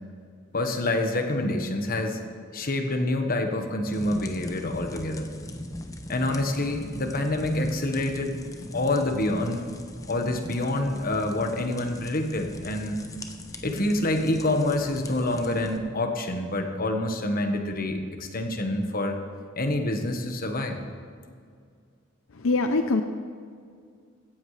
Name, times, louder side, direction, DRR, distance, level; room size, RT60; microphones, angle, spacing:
voice 1, 0.5-2.2 2.5-5.3 6.1-8.4 8.7-9.7 10.1-13.0 13.6-19.2 19.6-20.8, left 1 dB, 45° left, 5 dB, 1.4 m, -27 dB
sound 1, 3.9-15.8, left 1 dB, 15° left, 0.8 m, -41 dB
voice 2, 22.3-23.0, left 3 dB, 80° left, 7 dB, 0.7 m, -23 dB
16.0 x 15.0 x 3.3 m, 2.2 s
head